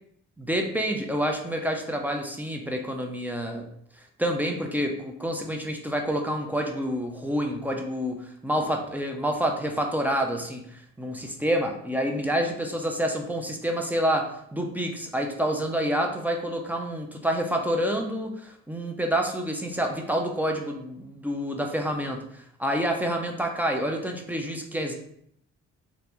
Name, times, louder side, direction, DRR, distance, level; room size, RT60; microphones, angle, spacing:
voice 1, 0.4-3.6 4.2-10.6 11.0-24.9, equal, 5° right, 2 dB, 0.5 m, -28 dB
3.3 x 2.5 x 3.0 m, 0.70 s
cardioid pair, 90°, 30 cm